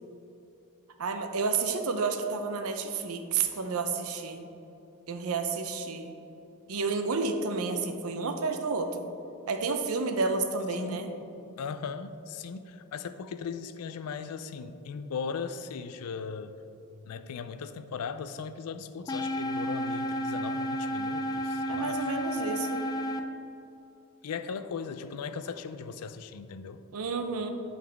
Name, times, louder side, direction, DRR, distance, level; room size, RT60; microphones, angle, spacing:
voice 1, 1.0-4.5 5.1-6.1 6.7-9.0 9.5-11.1 21.7-22.8 26.9-27.5, right 4 dB, 75° right, 6 dB, 0.6 m, -30 dB
voice 2, 10.8-11.1 11.6-16.6 17.1-22.1 24.2-26.8, left 5 dB, 90° left, 12 dB, 0.4 m, -38 dB
sound 1, 19.1-23.2, equal, 15° left, 0.3 m, -31 dB
11.5 x 4.0 x 3.5 m, 2.9 s
head